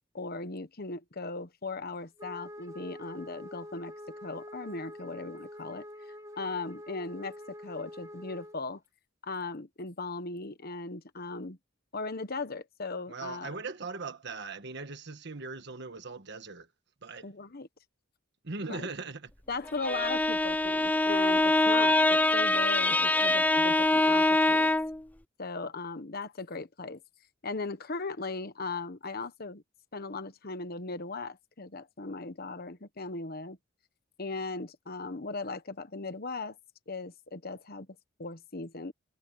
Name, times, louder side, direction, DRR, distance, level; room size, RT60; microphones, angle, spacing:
voice 1, 0.1-3.9 4.2-5.8 6.4-8.8 9.2-11.6 11.9-13.5 17.2-17.7 18.7-18.9 19.5-24.7 25.4-27.0 27.4-29.6 29.9-33.6 34.2-36.6 36.9-37.9 38.2-38.9, left 3 dB, 50° left, 1.2 m, -38 dB
Wind instrument woodwind instrument, 2.2-8.6, left 1 dB, 15° right, 2.2 m, -46 dB
voice 2, 13.1-16.7 17.0-17.3 18.4-19.3, right 4 dB, 60° right, 1.4 m, -39 dB
Bowed string instrument, 19.7-25.0, left 2 dB, 10° left, 0.5 m, -24 dB
head